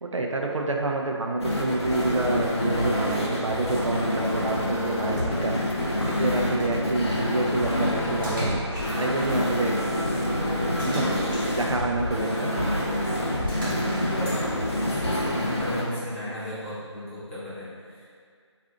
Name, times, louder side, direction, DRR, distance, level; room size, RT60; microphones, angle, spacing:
voice 1, 0.0-5.5 6.1-8.6 9.0-9.8 10.8-11.1 11.6-12.5, right 2 dB, 85° right, 0 dB, 0.5 m, -28 dB
sound 1, 1.4-15.8, left 1 dB, 60° left, 0.7 m, -27 dB
voice 2, 7.0-7.4 12.4-12.7 13.4-14.5 14.8-18.0, left 1 dB, 25° left, -11 dB, 0.8 m, -35 dB
Splash splatter, 8.2-9.2 10.8-11.9 13.5-14.3, right 1 dB, 45° right, 0.9 m, -35 dB
2.5 x 2.5 x 3.4 m, 2.1 s
figure-of-eight pair, 170°, 15 cm